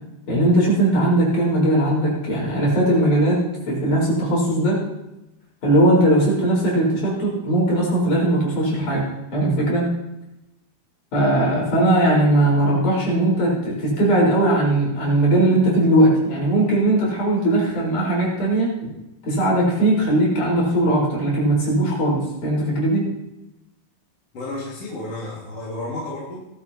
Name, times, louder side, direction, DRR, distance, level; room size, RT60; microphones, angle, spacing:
voice 1, 0.3-4.8 5.6-9.0 9.3-9.9 11.1-18.7 19.2-23.1, right 1 dB, 70° left, -4 dB, 6.2 m, -19 dB
voice 2, 24.3-26.4, left 2 dB, 50° left, -6 dB, 3.2 m, -31 dB
18.0 x 12.5 x 2.9 m, 0.93 s
omnidirectional pair, 3.6 m